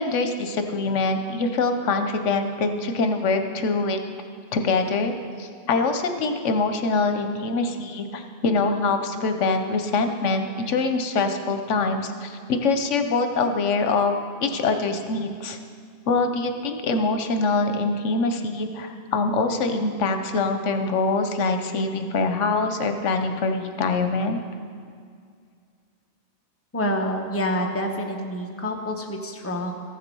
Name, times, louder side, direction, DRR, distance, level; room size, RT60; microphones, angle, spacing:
voice 1, 0.0-4.0 4.5-14.1 14.4-15.6 16.1-24.4, left 3 dB, 80° left, 7 dB, 1.1 m, -24 dB
voice 2, 26.7-29.7, equal, 15° left, 1 dB, 0.9 m, -27 dB
14.5 x 7.7 x 5.4 m, 2.2 s
omnidirectional pair, 1.2 m